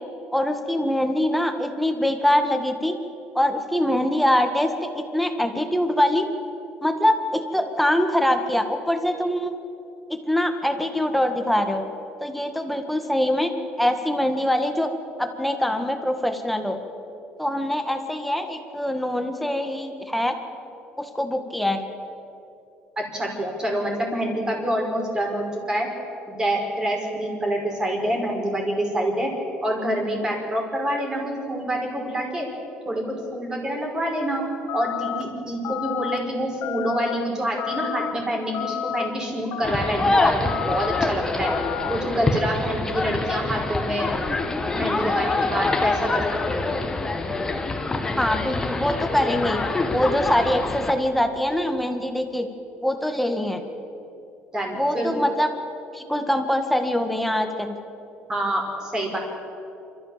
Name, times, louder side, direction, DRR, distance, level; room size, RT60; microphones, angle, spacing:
voice 1, 0.3-3.0 3.3-6.3 6.8-9.6 10.1-11.8 12.2-14.9 15.2-16.8 17.4-20.3 21.0-21.8 48.2-49.6 49.9-52.5 52.8-53.6 54.7-55.5 55.9-57.8, left 1 dB, ahead, 5 dB, 1.7 m, -23 dB
voice 2, 23.0-25.9 26.3-29.3 29.6-32.5 32.8-34.4 34.7-41.5 41.9-44.1 44.7-46.2 46.5-46.7 54.5-55.1 58.3-59.2, right 1 dB, 20° right, 0 dB, 5.1 m, -26 dB
sound 1, 34.7-35.2 35.6-36.2 36.6-37.2 37.6-38.1 38.5-39.1 39.5-40.0 40.5-41.0 41.4-42.0, left 11 dB, 75° left, 1.3 m, -30 dB
sound 2, 39.6-50.9, left 3 dB, 15° left, 1.6 m, -25 dB
28.0 x 13.5 x 7.4 m, 2.8 s
cardioid pair, 130°, 4 cm